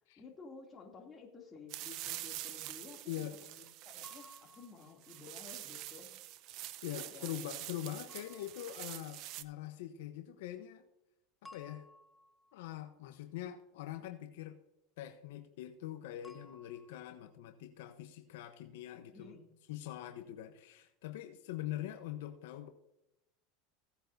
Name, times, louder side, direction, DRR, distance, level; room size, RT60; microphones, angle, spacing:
voice 1, 0.2-6.2 7.0-7.4 19.1-19.5, left 4 dB, 25° left, 1 dB, 2.6 m, -53 dB
sound 1, 1.7-9.4, right 15 dB, 55° right, 0.7 m, -46 dB
sound 2, 4.0-5.5 8.1-9.3 11.4-12.9 16.2-17.0, left 2 dB, 5° left, 0.7 m, -59 dB
voice 2, 6.8-10.8 11.4-11.9 12.5-14.6 15.0-19.4 19.7-22.7, left 12 dB, 80° left, 7 dB, 0.9 m, -43 dB
17.0 x 8.6 x 2.7 m, 0.87 s
supercardioid pair, 115°, 0 cm